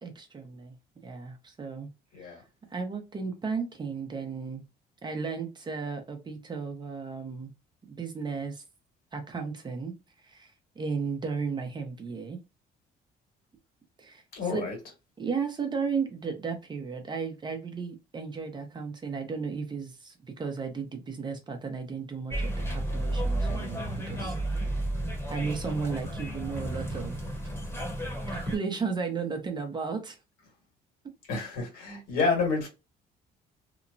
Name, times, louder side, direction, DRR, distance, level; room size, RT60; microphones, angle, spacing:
voice 1, 0.0-0.7 1.0-1.9 2.2-2.4 2.7-4.6 5.0-7.5 7.9-8.6 9.1-9.9 10.2-12.4 14.0-14.2 14.5-14.7 15.2-24.8 25.3-27.2 28.3-30.2, right 5 dB, 25° right, 0.7 m, -34 dB
voice 2, 14.3-14.8 31.3-32.7, left 4 dB, 70° left, 1.7 m, -29 dB
sound 1, 22.3-28.6, right 1 dB, 15° left, 1.0 m, -32 dB
2.9 x 2.1 x 2.5 m
cardioid pair, 110°, 17 cm